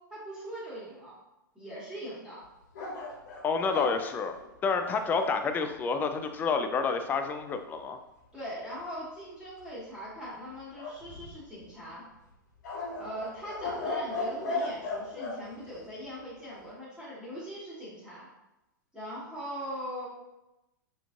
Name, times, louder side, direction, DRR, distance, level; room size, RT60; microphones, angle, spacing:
voice 1, 0.1-1.1 1.5-2.4 8.3-12.0 12.9-18.3 18.9-20.1, equal, 5° right, -9 dB, 1.3 m, -41 dB
sound 1, 2.7-5.4 10.7-11.6 12.6-15.4, left 2 dB, 55° left, 1.0 m, -36 dB
voice 2, 3.4-4.4 4.6-8.0, left 5 dB, 15° left, 7 dB, 0.3 m, -29 dB
5.7 x 2.5 x 2.4 m, 0.95 s
figure-of-eight pair, 100°, 11 cm